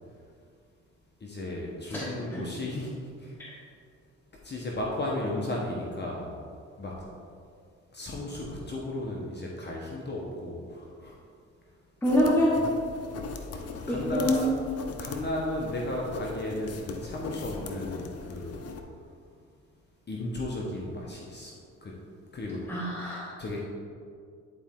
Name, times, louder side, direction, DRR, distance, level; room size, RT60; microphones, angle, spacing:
voice 1, 1.2-3.6 4.4-6.3 6.8-6.9 7.9-11.2 11.7-11.8 13.5-14.5 15.0-18.8 20.1-21.5 21.8-21.9 22.3-22.6 23.4-23.6, left 1 dB, 35° left, -3 dB, 1.1 m, -34 dB
sound 1, 12.0-18.8, left 4 dB, 55° left, 0.8 m, -40 dB
voice 2, 12.0-12.5 13.9-14.6 22.7-23.4, equal, 5° left, -7 dB, 1.3 m, -25 dB
9.8 x 4.3 x 3.7 m, 2.2 s
cardioid pair, 90°, 30 cm